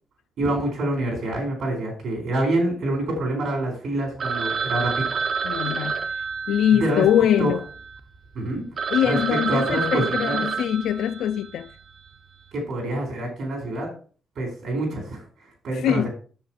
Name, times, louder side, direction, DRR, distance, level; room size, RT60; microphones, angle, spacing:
voice 1, 0.4-5.2 6.7-7.0 7.4-7.5 8.3-8.7 9.0-10.5 12.5-13.9 14.4-16.1, right 1 dB, 60° right, 4.2 m, -26 dB
Telephone, 4.2-8.0 8.5-8.6 8.8-11.6, right 5 dB, 35° right, 0.8 m, -29 dB
voice 2, 5.4-6.0 6.5-7.6 8.9-11.7 15.7-16.1, left 10 dB, 85° left, 0.4 m, -22 dB
7.2 x 7.1 x 5.9 m
cardioid pair, 165°, 0 cm